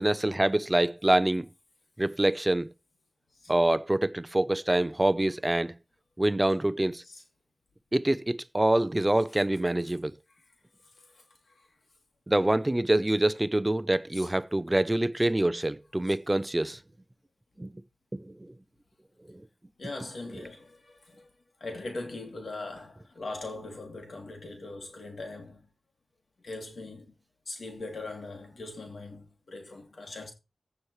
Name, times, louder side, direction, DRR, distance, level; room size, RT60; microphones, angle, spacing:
voice 1, 0.0-1.5 2.0-2.7 3.5-5.8 6.2-7.0 7.9-10.1 12.3-16.8 17.6-17.7 18.1-18.5 19.3-19.4, right 1 dB, 20° right, 0.6 m, -25 dB
voice 2, 11.0-11.6 14.1-14.3 19.8-21.3 21.6-25.6 26.4-27.1 27.5-30.3, left 2 dB, 85° left, 3.0 m, -41 dB
15.5 x 7.1 x 3.2 m
wide cardioid pair, 65°, 0 cm